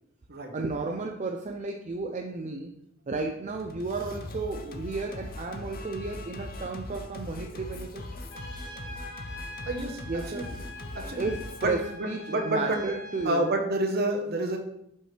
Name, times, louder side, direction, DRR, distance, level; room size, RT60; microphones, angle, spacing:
voice 1, 0.5-2.7 3.1-8.0 10.1-10.5 11.2-13.6, right 3 dB, 35° right, 2 dB, 0.4 m, -33 dB
Singing, 3.4-11.7, left 2 dB, 45° left, 0.6 m, -40 dB
Trumpet, 8.3-13.5, left 1 dB, 60° left, 1.8 m, -44 dB
voice 2, 9.7-10.5 10.9-11.3 11.6-12.8 13.2-14.6, right 1 dB, 50° right, 3 dB, 0.9 m, -29 dB
5.9 x 5.4 x 3.3 m, 0.77 s
head